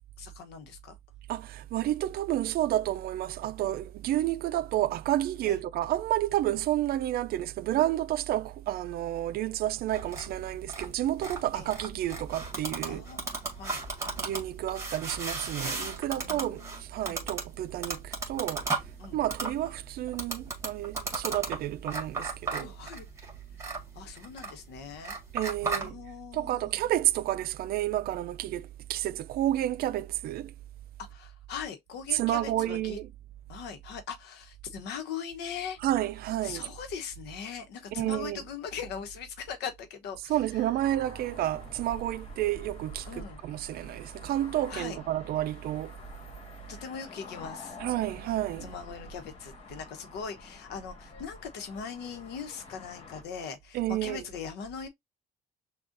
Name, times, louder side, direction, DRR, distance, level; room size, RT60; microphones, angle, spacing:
voice 1, 0.2-1.0 5.5-5.6 11.5-11.7 12.9-13.8 16.2-17.2 19.0-19.2 22.6-23.1 23.9-25.2 25.6-26.8 31.0-33.0 33.5-35.8 36.4-40.6 43.1-43.4 44.7-45.0 46.7-47.8 48.6-54.9, left 7 dB, 80° left, 1.0 m, -40 dB
voice 2, 1.3-13.0 14.2-18.6 19.1-22.7 25.3-26.0 26.3-30.5 32.1-33.1 35.8-36.6 37.9-38.4 40.3-45.9 47.8-48.7 53.7-54.2, right 13 dB, 65° right, 0.4 m, -30 dB
sound 1, 9.9-25.9, right 3 dB, 15° right, 1.8 m, -36 dB
sound 2, 40.8-53.2, left 2 dB, 35° left, 1.6 m, -48 dB
6.3 x 2.4 x 2.6 m
cardioid pair, 110°, 17 cm